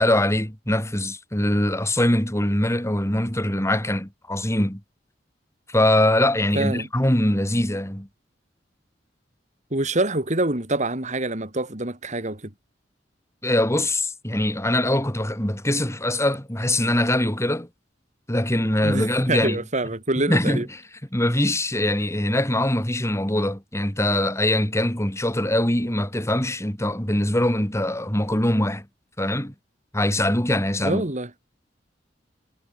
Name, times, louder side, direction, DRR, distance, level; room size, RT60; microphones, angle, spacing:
voice 1, 0.0-4.8 5.7-8.1 13.4-17.7 18.3-19.6 20.3-20.6 21.1-28.8 29.2-29.5 29.9-31.0, left 1 dB, 15° left, 4.6 m, -22 dB
voice 2, 6.5-6.9 9.7-12.5 18.8-20.7 30.8-31.3, right 2 dB, 40° right, 4.4 m, -26 dB
head